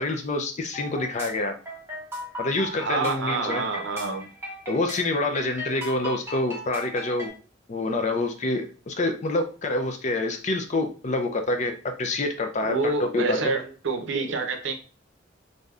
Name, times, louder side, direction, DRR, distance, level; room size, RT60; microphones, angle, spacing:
voice 1, 0.0-1.5 2.4-3.6 4.7-7.3 7.7-11.7 12.0-13.5, left 2 dB, 35° left, 5 dB, 0.4 m, -27 dB
sound 1, 0.7-7.3, equal, 10° right, 0.8 m, -37 dB
voice 2, 2.8-4.3 12.6-14.7, right 3 dB, 70° right, 5 dB, 0.6 m, -27 dB
3.3 x 2.6 x 2.4 m, 0.36 s
head